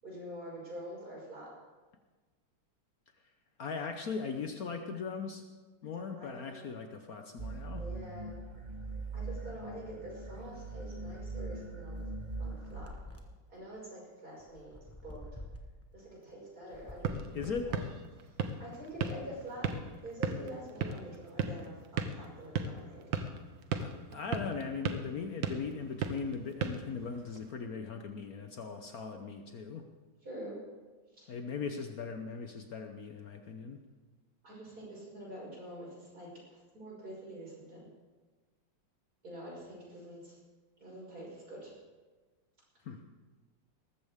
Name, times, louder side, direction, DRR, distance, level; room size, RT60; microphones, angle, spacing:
voice 1, 0.0-1.5 6.0-6.6 7.8-8.3 9.1-12.0 12.4-12.9 13.5-14.7 15.0-15.3 15.9-17.8 18.2-23.0 30.2-30.6 31.1-31.4 34.4-37.9 39.2-40.4 40.8-41.7, right 1 dB, 50° right, -5 dB, 6.3 m, -46 dB
voice 2, 3.6-5.4 5.8-7.9 17.3-17.8 23.8-29.8 31.3-33.8 42.8-43.0, left 5 dB, 60° left, 5 dB, 1.2 m, -39 dB
sound 1, 7.4-12.8, right 3 dB, 30° right, 0.9 m, -41 dB
sound 2, 12.4-13.5 14.4-15.9 16.6-18.0 18.8-20.0, left 1 dB, 10° left, 0.9 m, -49 dB
sound 3, 16.7-27.5, right 5 dB, 85° right, 1.7 m, -38 dB
19.0 x 14.5 x 3.6 m, 1.3 s
omnidirectional pair, 2.0 m